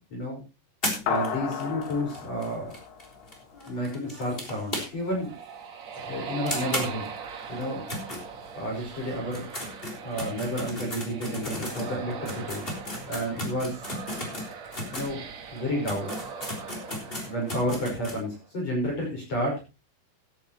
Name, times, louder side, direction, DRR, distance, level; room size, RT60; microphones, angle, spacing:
voice 1, 0.1-0.4 1.1-2.7 3.7-5.3 6.0-7.1 7.5-7.8 8.5-9.5 10.0-12.6 13.0-13.8 14.9-15.2 15.5-16.1 17.3-19.6, equal, 30° left, -1 dB, 6.0 m, -31 dB
sound 1, 0.8-5.2 5.5-5.6 5.9-6.0 6.5-8.8 9.2-15.1 15.6-15.7 15.8-18.2, left 1 dB, 15° left, 2.9 m, -35 dB
sound 2, 1.1-3.8, left 6 dB, 60° left, 3.2 m, -33 dB
sound 3, 4.9-18.3, right 6 dB, 85° right, 1.5 m, -41 dB
16.5 x 11.0 x 3.0 m, 0.27 s
omnidirectional pair, 5.9 m